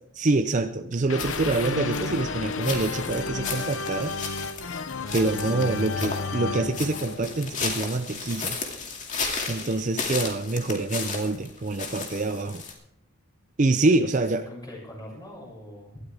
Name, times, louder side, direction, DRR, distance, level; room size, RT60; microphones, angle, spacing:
voice 1, 0.2-4.2 5.1-8.6 9.5-12.6 13.6-14.4, right 2 dB, 35° right, 9 dB, 0.5 m, -26 dB
sound 1, 1.1-8.1, left 4 dB, 65° left, 0.7 m, -32 dB
sound 2, 1.2-12.7, left 4 dB, 35° left, 2.3 m, -35 dB
voice 2, 9.5-9.9 13.9-15.9, left 1 dB, 20° left, -4 dB, 6.4 m, -43 dB
18.5 x 13.0 x 3.5 m, 0.75 s
head